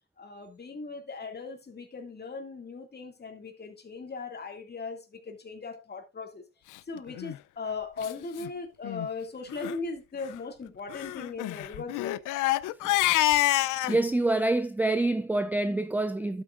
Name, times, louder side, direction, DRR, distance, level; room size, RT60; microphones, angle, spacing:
voice 1, 0.2-6.4 6.9-12.2, left 4 dB, 35° left, 2.2 m, -38 dB
Crying sobbing, 7.1-7.4 8.0-8.1 8.4-8.5 8.8-9.1 9.5-9.8 10.9-14.0, left 17 dB, 90° left, 0.5 m, -27 dB
voice 2, 13.9-16.4, right 2 dB, 5° right, 0.4 m, -26 dB
12.0 x 8.1 x 2.5 m
cardioid pair, 90°, 30 cm